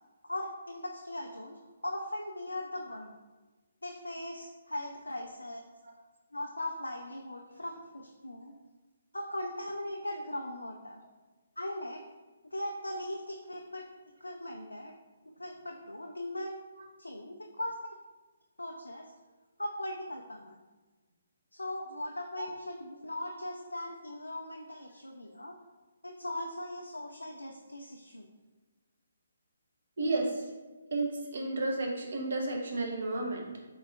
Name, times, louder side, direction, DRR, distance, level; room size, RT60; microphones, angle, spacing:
voice 1, 0.2-1.6 1.8-3.1 3.8-5.6 6.3-8.6 9.1-11.0 11.6-12.0 12.4-13.9 14.2-14.9 15.4-16.6 17.0-17.9 18.6-19.1 19.6-20.6 21.5-25.6 26.0-28.3, left 1 dB, 75° left, 1 dB, 0.3 m, -39 dB
voice 2, 30.0-30.4 30.9-33.5, right 2 dB, 55° right, 0 dB, 0.7 m, -32 dB
3.7 x 3.2 x 2.5 m, 1.3 s
figure-of-eight pair, 135°, 0 cm